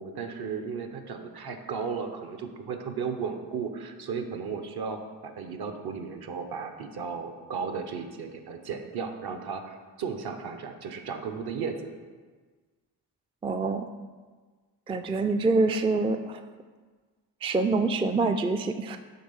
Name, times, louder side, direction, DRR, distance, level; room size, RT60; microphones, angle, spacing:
voice 1, 0.0-11.9, right 5 dB, 60° right, 6 dB, 0.9 m, -35 dB
voice 2, 13.4-13.9 14.9-16.4 17.4-19.0, right 3 dB, 15° right, 7 dB, 0.3 m, -26 dB
7.9 x 3.1 x 5.5 m, 1.4 s
supercardioid pair, 60°, 43 cm